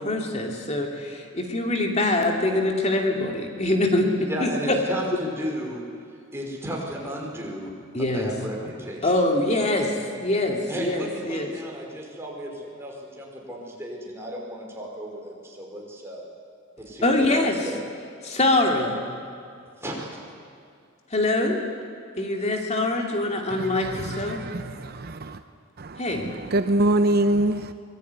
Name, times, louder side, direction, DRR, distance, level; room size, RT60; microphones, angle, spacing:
voice 1, 0.0-4.8 7.9-8.3 9.0-10.0 10.2-11.5 17.0-17.6 18.2-19.0 21.1-21.6 22.2-24.4 26.0-26.3, left 2 dB, 35° left, 2 dB, 2.7 m, -24 dB
voice 2, 4.2-5.8 6.3-7.7 8.0-9.1 10.7-16.2 16.8-17.8 19.8-20.2, equal, 10° right, -1 dB, 5.2 m, -34 dB
voice 3, 23.5-25.4 25.8-27.7, right 1 dB, 50° right, 10 dB, 0.8 m, -25 dB
24.5 x 20.5 x 9.6 m, 2.3 s
head